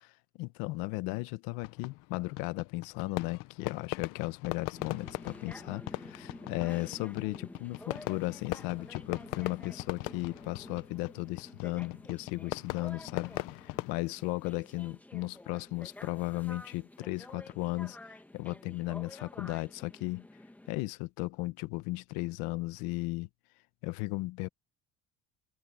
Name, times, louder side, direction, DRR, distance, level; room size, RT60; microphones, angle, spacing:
voice 1, 0.4-20.3 20.7-23.3 23.8-24.5, left 21 dB, 85° left, 1.1 m, -36 dB
Fireworks, 1.6-13.9, left 20 dB, 65° left, 0.8 m, -40 dB
sound 1, 4.7-20.7, left 1 dB, 5° left, 1.5 m, -50 dB
cardioid pair, 170°, 34 cm